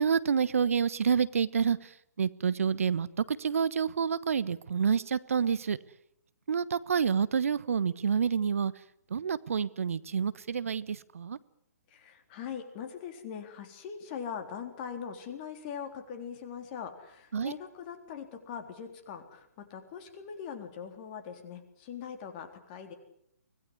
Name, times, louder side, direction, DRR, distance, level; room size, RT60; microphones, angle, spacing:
voice 1, 0.0-1.9 2.2-5.8 6.5-8.7 9.1-11.4 17.3-17.5, right 6 dB, 60° right, 17 dB, 1.2 m, -28 dB
voice 2, 11.9-22.9, left 7 dB, 30° left, 6 dB, 3.7 m, -41 dB
25.0 x 18.0 x 9.7 m, 0.74 s
figure-of-eight pair, 135°, 9 cm